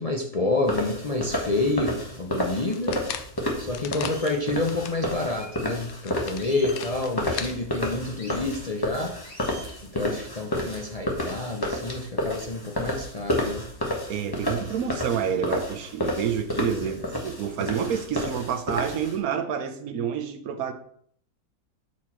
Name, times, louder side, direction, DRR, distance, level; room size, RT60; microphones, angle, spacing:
voice 1, 0.0-3.0 3.6-9.2 9.8-13.6 16.6-17.0, left 2 dB, 40° left, 0 dB, 0.5 m, -28 dB
sound 1, 0.7-19.1, left 1 dB, 15° left, 1.0 m, -31 dB
sound 2, 2.5-5.0 5.4-5.5 5.8-7.5, left 9 dB, 75° left, 1.0 m, -38 dB
sound 3, 2.7-2.8 3.3-3.4 4.0-4.4 5.2-5.7 6.4-6.9 8.2-8.4 9.2-9.8, left 1 dB, 90° left, 2.3 m, -45 dB
voice 2, 14.1-20.7, right 8 dB, 70° right, 7 dB, 1.2 m, -28 dB
6.3 x 4.4 x 4.3 m, 0.64 s
omnidirectional pair, 1.6 m